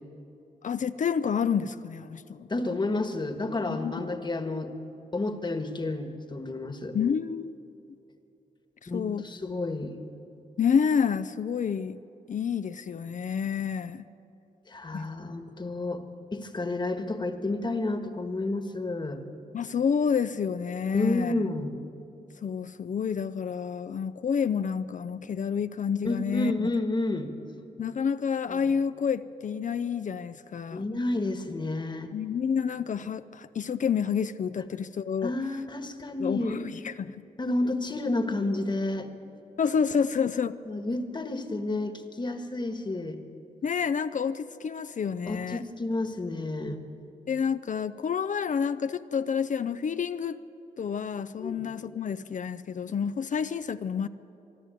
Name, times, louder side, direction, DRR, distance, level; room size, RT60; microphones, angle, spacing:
voice 1, 0.6-2.5 3.7-3.9 6.9-7.6 8.8-9.2 10.6-12.0 12.3-14.0 14.9-15.1 19.5-21.4 22.4-26.7 27.8-30.9 32.1-35.3 36.2-37.2 39.6-40.6 43.6-45.6 47.3-50.4 50.8-54.1, left 7 dB, 55° left, 12 dB, 0.5 m, -29 dB
voice 2, 2.5-4.7 5.1-7.0 8.9-9.9 14.7-16.0 16.3-19.2 20.9-21.8 26.0-27.3 28.5-28.6 30.7-32.1 35.2-36.6 37.4-39.1 40.6-43.2 45.3-46.8 51.4-51.7, left 2 dB, 30° left, 7 dB, 1.5 m, -30 dB
24.5 x 12.5 x 9.1 m, 2.9 s
wide cardioid pair, 125°, 15 cm